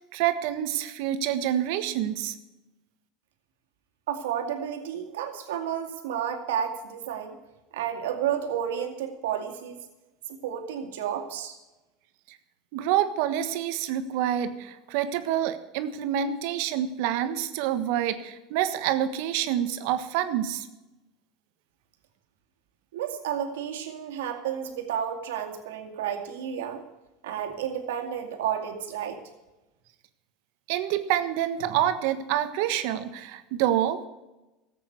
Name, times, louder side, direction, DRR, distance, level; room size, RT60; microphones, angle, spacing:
voice 1, 0.1-2.3 12.7-20.7 30.7-34.1, right 11 dB, 70° right, 10 dB, 1.3 m, -27 dB
voice 2, 4.1-7.4 7.7-9.8 10.4-11.6 22.9-26.8 27.2-29.2, right 9 dB, 90° right, 4 dB, 2.2 m, -31 dB
14.0 x 8.5 x 8.0 m, 1.0 s
supercardioid pair, 115°, 0 cm